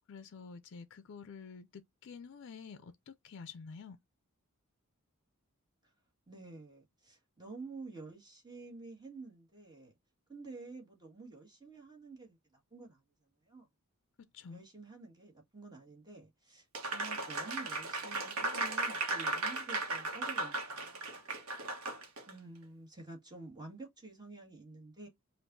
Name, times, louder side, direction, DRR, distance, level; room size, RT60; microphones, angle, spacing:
voice 1, 0.1-4.0 14.2-14.6, left 5 dB, 55° left, 0.4 m, -49 dB
voice 2, 6.3-9.9 10.3-13.0 13.4-13.7 14.5-21.2 21.9-25.1, right 3 dB, 20° right, 1.7 m, -50 dB
Applause, 16.7-22.3, right 2 dB, 70° right, 1.2 m, -36 dB
5.3 x 2.5 x 2.6 m
head